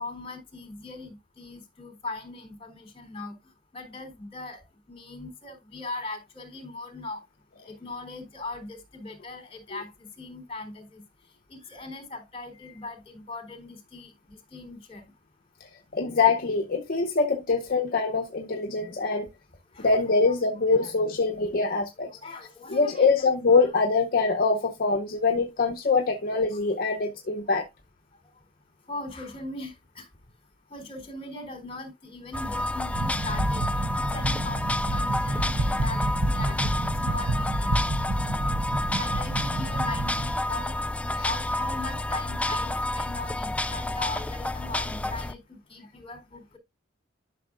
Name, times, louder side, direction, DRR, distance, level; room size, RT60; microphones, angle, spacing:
voice 1, 0.0-3.4 3.7-7.2 7.6-11.0 11.5-15.0 19.7-20.3 20.7-20.9 22.0-23.1 23.5-23.6 26.8-27.0 28.9-30.1 30.7-37.7 39.0-40.7 41.2-46.6, left 3 dB, 30° left, 3.6 m, -39 dB
voice 2, 15.9-19.3 19.8-22.1 22.7-27.7 41.2-41.3, left 4 dB, 50° left, 0.8 m, -24 dB
sound 1, 32.3-45.3, left 1 dB, 5° left, 0.4 m, -30 dB
sound 2, 32.9-40.3, right 1 dB, 85° right, 1.1 m, -29 dB
12.0 x 6.1 x 2.5 m
head